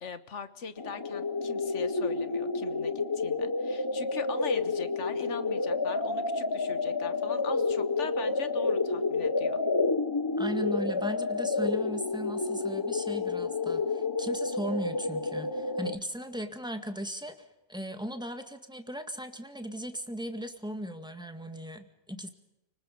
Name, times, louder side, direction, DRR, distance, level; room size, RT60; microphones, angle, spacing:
voice 1, 0.0-9.6, left 6 dB, 75° left, 13 dB, 1.6 m, -41 dB
sound 1, 0.8-16.0, left 3 dB, 20° left, 0.8 m, -30 dB
voice 2, 10.4-17.4 17.7-22.3, equal, 5° right, 7 dB, 1.8 m, -37 dB
29.5 x 19.5 x 5.3 m, 0.94 s
omnidirectional pair, 1.2 m